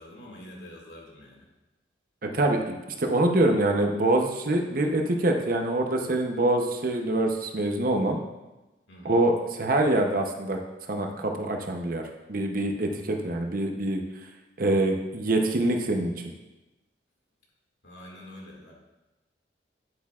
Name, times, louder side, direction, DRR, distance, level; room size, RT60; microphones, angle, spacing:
voice 1, 0.0-1.5 8.9-9.2 12.8-13.1 17.8-18.7, left 1 dB, 80° left, -2 dB, 2.0 m, -46 dB
voice 2, 2.2-8.2 9.0-10.6 10.9-12.0 12.3-14.0 14.6-16.1, right 1 dB, 50° right, 3 dB, 0.8 m, -25 dB
9.5 x 7.9 x 2.4 m, 1.1 s
head